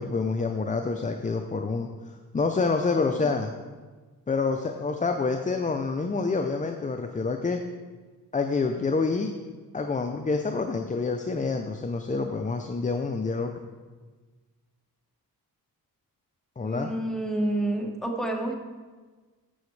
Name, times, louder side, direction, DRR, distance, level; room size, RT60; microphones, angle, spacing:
voice 1, 0.0-1.9 2.3-3.5 4.3-7.6 8.3-9.3 9.7-13.5 16.6-16.9, left 4 dB, 20° left, 5 dB, 0.5 m, -27 dB
voice 2, 16.6-18.5, right 1 dB, ahead, 1 dB, 1.2 m, -29 dB
13.5 x 5.9 x 3.2 m, 1.4 s
cardioid pair, 95°, 35 cm